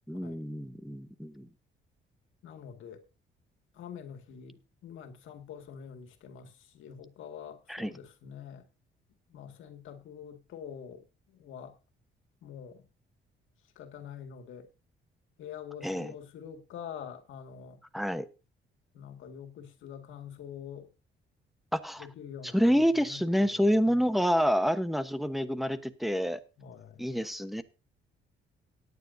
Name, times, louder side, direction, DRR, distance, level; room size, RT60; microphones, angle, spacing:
voice 1, 0.1-1.5 7.7-7.9 15.8-16.1 17.9-18.3 21.7-22.1 22.5-26.4 27.0-27.6, equal, ahead, 1.1 m, -28 dB
voice 2, 2.4-3.0 3.7-8.7 9.3-11.8 12.4-12.8 13.8-14.7 15.4-17.8 18.9-20.9 22.0-24.0 26.6-27.1, left 8 dB, 80° left, 2.0 m, -46 dB
18.0 x 9.6 x 2.7 m
cardioid pair, 90°, 20 cm